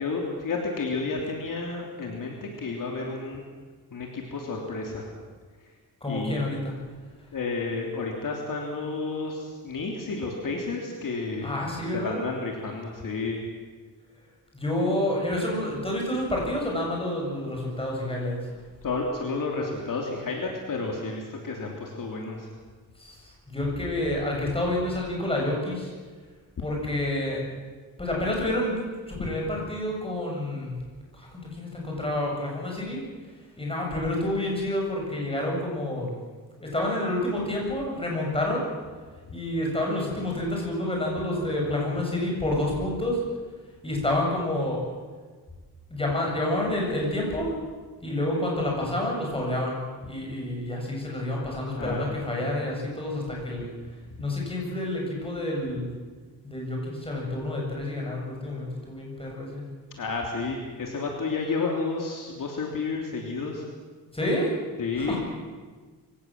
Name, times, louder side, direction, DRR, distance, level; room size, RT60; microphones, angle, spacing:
voice 1, 0.0-3.4 3.9-5.1 6.1-6.4 7.3-11.5 11.9-13.4 18.8-22.5 29.1-29.3 51.8-52.1 60.0-63.7 64.8-65.2, left 3 dB, 55° left, 1 dB, 3.2 m, -31 dB
voice 2, 6.0-6.7 11.4-12.2 14.5-18.4 23.0-25.9 26.6-27.4 28.0-28.8 29.1-30.8 31.1-33.0 33.6-36.2 36.6-38.7 39.3-43.2 43.8-44.9 45.9-47.6 48.0-53.7 54.2-55.9 56.4-59.6 64.1-64.5 64.9-65.2, left 1 dB, 15° left, -2 dB, 7.4 m, -29 dB
24.0 x 17.5 x 7.6 m, 1.4 s
wide cardioid pair, 135°, 38 cm